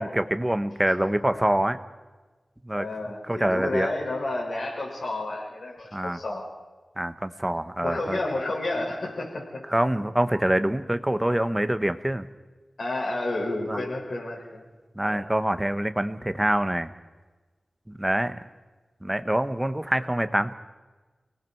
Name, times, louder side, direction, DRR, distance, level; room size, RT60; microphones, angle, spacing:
voice 1, 0.0-1.8 2.6-2.9 3.3-3.9 5.9-6.2 7.0-8.2 9.7-12.3 13.7-13.8 14.9-16.9 18.0-18.4 19.0-20.5, right 1 dB, 10° right, 11 dB, 1.1 m, -25 dB
voice 2, 2.7-6.5 7.8-9.6 12.8-14.6 15.0-15.2, left 2 dB, 80° left, -2 dB, 6.2 m, -31 dB
30.0 x 19.0 x 4.6 m, 1.3 s
wide cardioid pair, 85°, 0 cm